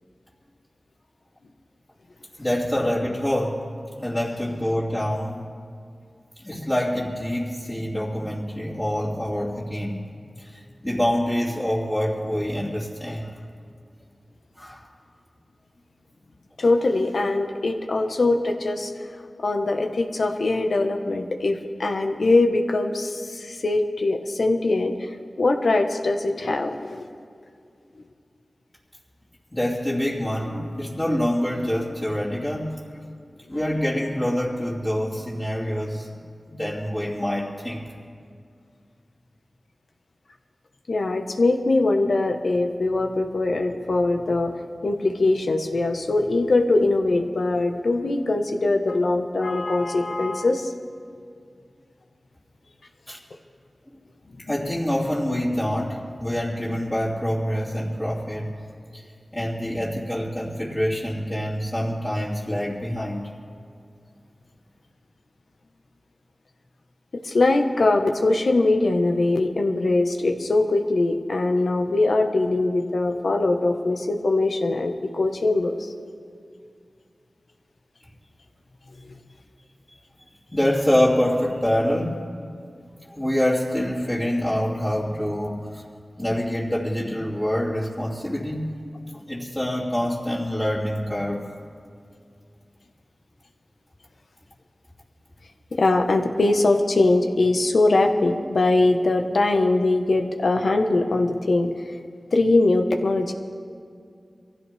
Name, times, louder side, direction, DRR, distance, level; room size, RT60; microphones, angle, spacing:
voice 1, 2.4-3.6 4.0-5.4 6.4-10.0 10.4-13.3 14.5-14.9 29.5-32.8 33.5-36.1 36.5-37.8 53.1-53.2 54.5-58.5 58.9-59.1 59.3-63.3 80.5-82.2 83.1-85.8 86.2-88.8 89.1-91.4, equal, 20° left, -8 dB, 2.9 m, -26 dB
voice 2, 16.6-18.9 19.4-25.1 25.4-27.1 40.9-44.5 44.8-50.7 67.2-75.9 95.8-101.7 102.3-103.3, left 2 dB, 80° left, 4 dB, 1.3 m, -22 dB
23.5 x 16.0 x 3.5 m, 2.3 s
cardioid pair, 40°, 0 cm